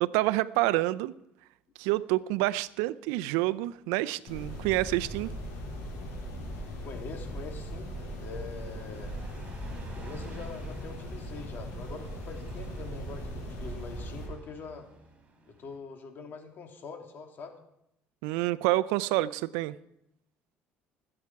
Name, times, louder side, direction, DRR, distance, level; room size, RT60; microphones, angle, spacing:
voice 1, 0.0-1.1 1.8-5.3 18.2-19.8, right 18 dB, 90° right, 0.5 m, -28 dB
sound 1, 4.3-14.3, equal, 85° left, 6.6 m, -39 dB
voice 2, 6.8-9.1 9.9-14.9 15.5-17.5, left 4 dB, 50° left, 2.8 m, -44 dB
Car passing by, 7.3-15.8, right 4 dB, 30° right, 3.8 m, -49 dB
20.5 x 8.7 x 4.7 m
supercardioid pair, 90°, 4 cm